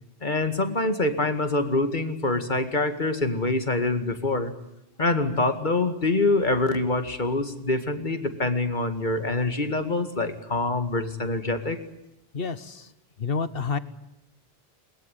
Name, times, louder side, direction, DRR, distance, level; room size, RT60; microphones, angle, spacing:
voice 1, 0.2-4.5 5.0-11.8, left 2 dB, 50° left, 9 dB, 2.3 m, -25 dB
voice 2, 12.3-12.9 13.2-13.8, left 5 dB, 65° left, 15 dB, 1.3 m, -29 dB
21.5 x 21.0 x 9.4 m, 0.87 s
omnidirectional pair, 1.1 m